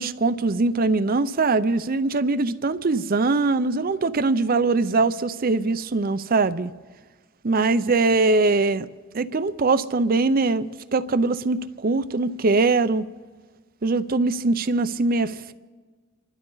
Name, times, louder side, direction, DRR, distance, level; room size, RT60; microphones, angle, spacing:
voice 1, 0.0-6.7 7.4-8.9 9.1-13.1 13.8-15.5, right 3 dB, 45° right, 0.6 m, -22 dB
28.0 x 12.0 x 4.0 m
head